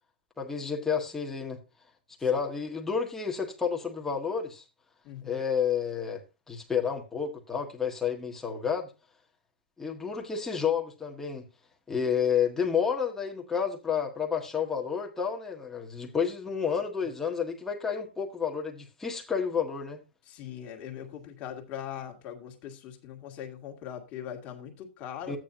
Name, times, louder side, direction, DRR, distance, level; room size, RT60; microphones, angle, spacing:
voice 1, 0.4-1.6 2.2-4.6 5.2-6.2 6.5-8.9 9.8-11.4 11.9-20.0 25.3-25.4, left 7 dB, 5° left, 1.6 m, -30 dB
voice 2, 5.0-5.4 20.3-25.4, left 9 dB, 30° left, 2.0 m, -41 dB
13.5 x 9.1 x 2.7 m
hypercardioid pair, 150°, 6 cm